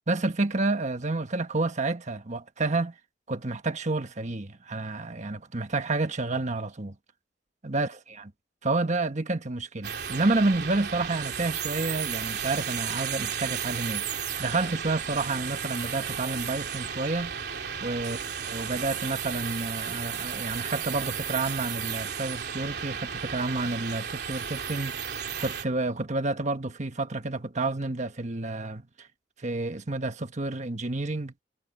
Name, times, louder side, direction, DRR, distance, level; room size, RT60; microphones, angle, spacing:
voice 1, 0.1-2.9 3.3-6.9 7.6-8.3 8.6-17.3 17.8-25.0 25.4-28.8 29.4-31.3, right 2 dB, 40° right, 1.4 m, -29 dB
sound 1, 9.8-25.6, right 8 dB, 65° right, 3.3 m, -34 dB
head